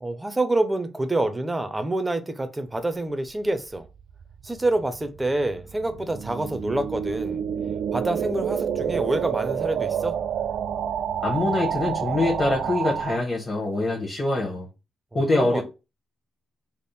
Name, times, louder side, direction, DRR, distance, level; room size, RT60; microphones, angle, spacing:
voice 1, 0.0-3.9 4.4-7.4 7.9-10.2 15.3-15.6, right 2 dB, 15° right, 0.5 m, -27 dB
sound 1, 3.9-13.2, right 8 dB, 80° right, 0.3 m, -29 dB
voice 2, 11.2-14.7 15.1-15.6, left 2 dB, 30° left, 1.0 m, -24 dB
3.4 x 2.0 x 4.1 m
cardioid pair, 110°, 0 cm